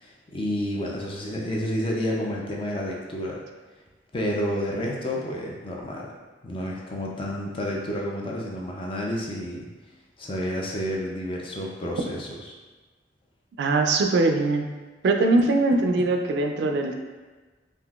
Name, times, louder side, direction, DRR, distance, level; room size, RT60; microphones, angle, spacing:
voice 1, 0.0-3.4 4.1-6.1 6.4-9.7 10.2-12.3 16.6-16.7, equal, 30° left, -2 dB, 0.4 m, -30 dB
voice 2, 13.6-14.6 15.0-16.9, right 2 dB, 65° right, 3 dB, 0.3 m, -21 dB
3.6 x 2.6 x 2.3 m, 1.3 s
head